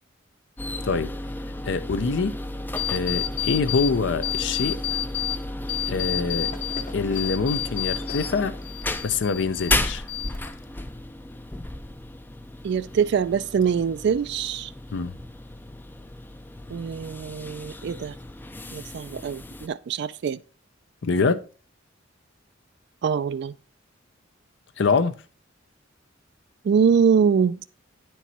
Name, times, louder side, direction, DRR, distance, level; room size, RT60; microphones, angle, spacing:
sound 1, 0.6-19.7, left 1 dB, 10° left, 0.4 m, -34 dB
voice 1, 1.6-2.3 2.9-4.8 5.9-6.5 6.9-8.6 9.0-10.0 14.9-15.2 21.0-21.4 24.8-25.1, left 4 dB, 65° left, 0.5 m, -25 dB
sound 2, 2.8-3.9 4.2-5.4 5.7-8.3 8.6-9.8 10.1-10.7, left 13 dB, 40° left, 0.9 m, -30 dB
voice 2, 12.6-14.7 16.7-18.1 18.7-20.4 23.0-23.5 26.6-27.6, right 6 dB, 60° right, 0.3 m, -23 dB
9.0 x 4.6 x 4.1 m
head